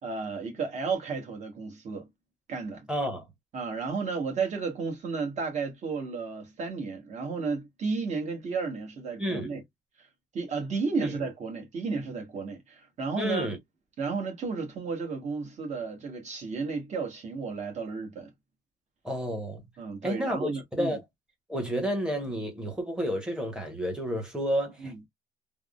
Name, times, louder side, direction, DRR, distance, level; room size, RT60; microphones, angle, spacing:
voice 1, 0.0-2.1 2.5-2.9 3.5-9.6 10.0-10.1 10.3-13.5 14.0-18.3 19.8-21.0 24.8-25.0, right 4 dB, 40° right, 1.2 m, -33 dB
voice 2, 2.9-3.3 9.2-9.5 11.0-11.1 13.2-13.6 19.0-19.7 20.0-21.0 21.5-25.1, equal, 5° right, 0.9 m, -30 dB
3.5 x 2.1 x 2.3 m
cardioid pair, 145°, 19 cm